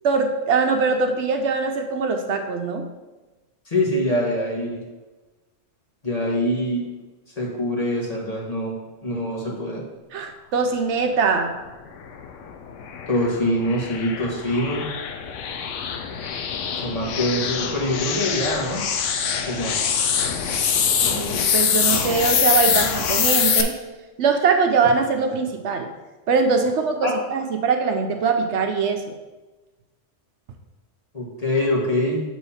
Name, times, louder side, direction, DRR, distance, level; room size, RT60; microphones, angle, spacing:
voice 1, 0.0-2.9 10.1-11.6 21.1-23.7 24.2-25.9 26.3-29.0, right 4 dB, 70° right, 5 dB, 0.9 m, -22 dB
voice 2, 3.7-4.8 6.0-6.8 7.4-8.7 9.0-9.8 13.1-14.8 16.8-18.8 19.5-19.8 27.0-27.1 31.1-32.2, left 1 dB, 35° left, -3 dB, 1.3 m, -24 dB
sound 1, 12.1-23.6, left 7 dB, 85° left, 1.0 m, -24 dB
7.4 x 3.2 x 5.6 m, 1.2 s
omnidirectional pair, 1.2 m